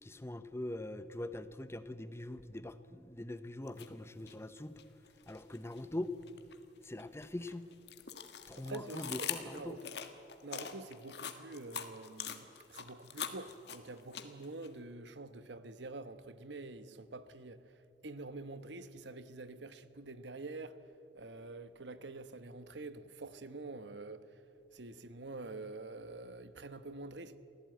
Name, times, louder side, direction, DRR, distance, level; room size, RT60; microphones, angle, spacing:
voice 1, 0.0-4.8 5.3-6.1 6.8-7.7 8.5-9.8, left 1 dB, 15° left, 0.7 m, -42 dB
sound 1, 3.7-3.9 4.3-5.8 6.2-14.7, left 8 dB, 65° left, 1.6 m, -43 dB
voice 2, 8.5-9.9 10.4-17.6 18.0-20.8 21.1-24.4 24.7-27.3, right 3 dB, 80° right, 1.1 m, -47 dB
24.0 x 16.0 x 9.2 m
head